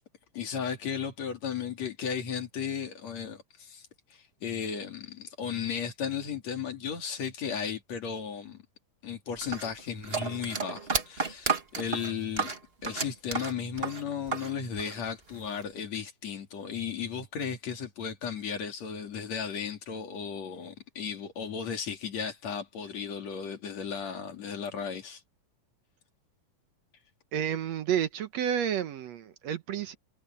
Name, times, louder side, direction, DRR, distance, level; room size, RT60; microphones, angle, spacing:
voice 1, 0.3-8.6 9.0-12.5 12.8-25.2, left 7 dB, 60° left, 3.7 m, -35 dB
sound 1, 9.4-14.5 14.8-15.6, right 4 dB, 25° right, 1.4 m, -32 dB
voice 2, 27.3-30.0, right 9 dB, 65° right, 2.0 m, -30 dB
omnidirectional pair, 3.4 m